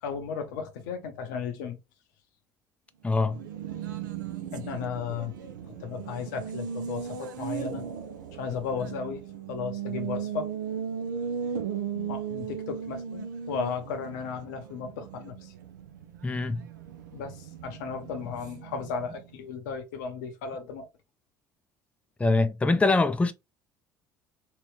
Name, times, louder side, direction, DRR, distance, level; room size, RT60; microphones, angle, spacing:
voice 1, 0.0-1.8 4.5-5.4 5.7-7.8 8.3-9.2 9.5-10.5 11.9-15.5 17.1-20.9, left 6 dB, 75° left, 0.7 m, -35 dB
voice 2, 3.0-3.4 16.2-16.6 22.2-23.3, left 3 dB, 15° left, 0.4 m, -23 dB
Race car auto racing, 3.1-19.4, right 7 dB, 85° right, 0.4 m, -37 dB
3.0 x 2.8 x 3.2 m
hypercardioid pair, 60°, 10 cm